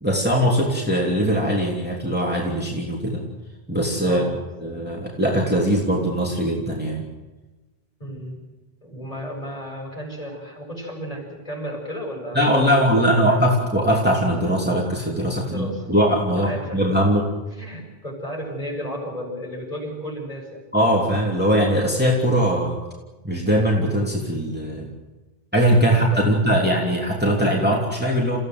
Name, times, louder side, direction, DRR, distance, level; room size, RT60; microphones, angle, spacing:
voice 1, 0.0-3.2 3.7-4.3 4.6-7.1 12.3-17.3 20.7-22.8 23.2-24.9 25.5-28.4, equal, 10° right, -3 dB, 3.1 m, -21 dB
voice 2, 4.1-4.4 8.0-8.4 8.8-13.2 15.4-15.9 16.4-16.8 17.5-20.6 25.8-26.4, equal, 35° left, -1 dB, 7.8 m, -33 dB
29.5 x 16.0 x 7.9 m, 1.2 s
omnidirectional pair, 1.0 m